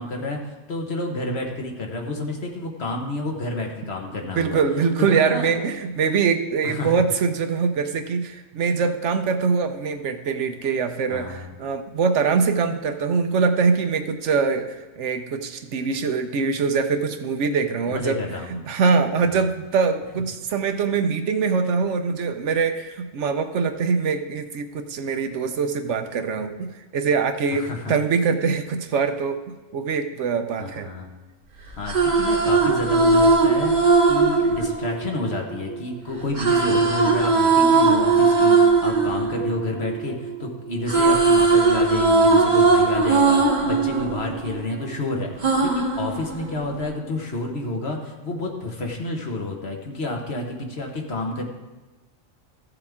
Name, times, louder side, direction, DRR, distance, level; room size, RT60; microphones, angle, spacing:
voice 1, 0.0-4.6 5.0-5.5 6.6-6.9 11.1-11.4 17.9-18.5 19.3-19.4 27.5-27.9 30.6-31.1 31.8-51.5, left 2 dB, 55° left, 1 dB, 1.4 m, -30 dB
voice 2, 4.3-30.9, right 5 dB, 70° right, 8 dB, 1.0 m, -23 dB
sound 1, 31.7-35.8 36.4-40.4 40.7-44.9 45.4-46.9, right 3 dB, 35° right, 1.1 m, -19 dB
15.0 x 6.9 x 3.6 m, 1.2 s
omnidirectional pair, 1.3 m